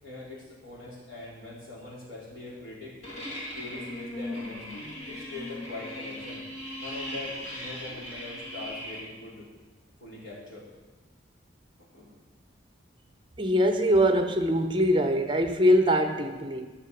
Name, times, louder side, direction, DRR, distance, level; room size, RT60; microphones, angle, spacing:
voice 1, 0.0-3.0 3.5-6.4 6.8-9.5 10.0-10.7 11.8-12.1, left 2 dB, 85° left, -6 dB, 4.2 m, -42 dB
sound 1, 3.0-9.0, left 1 dB, 35° left, 2.6 m, -38 dB
voice 2, 13.4-16.7, equal, 25° right, 7 dB, 0.8 m, -23 dB
11.5 x 6.7 x 7.0 m, 1.3 s
head